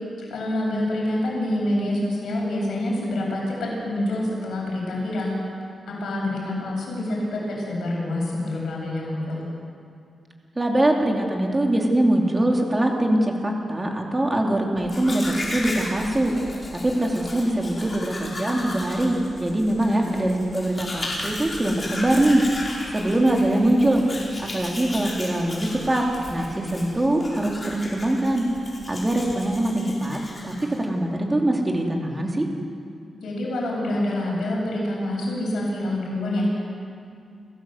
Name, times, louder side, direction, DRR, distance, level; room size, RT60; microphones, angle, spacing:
voice 1, 0.3-5.3 5.9-9.4 19.7-20.2 33.2-36.8, left 1 dB, 80° left, -3 dB, 7.8 m, -26 dB
voice 2, 10.6-15.2 15.5-16.3 16.8-24.0 24.4-28.4 28.9-32.5, right 1 dB, 15° right, 0 dB, 3.0 m, -23 dB
Domestic sounds home sounds, 14.8-30.9, left 1 dB, 20° left, 4.9 m, -35 dB
29.5 x 16.0 x 8.0 m, 2.4 s
wide cardioid pair, 165°, 0 cm